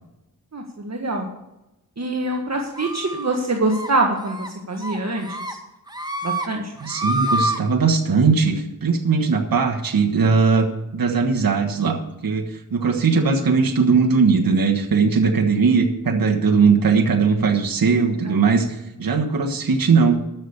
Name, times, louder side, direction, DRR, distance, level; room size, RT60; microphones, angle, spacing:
voice 1, 0.5-1.3 2.0-5.6 6.2-6.7, right 2 dB, 45° right, 2 dB, 1.7 m, -24 dB
sound 1, 2.8-3.3 3.7-3.9 4.2-4.5 4.8-5.5 5.9-6.5 6.8-7.6, right 1 dB, 10° right, 1.7 m, -27 dB
voice 2, 6.8-20.2, right 5 dB, 70° right, 2 dB, 1.4 m, -19 dB
12.5 x 6.9 x 7.1 m, 0.95 s
cardioid pair, 50°, 36 cm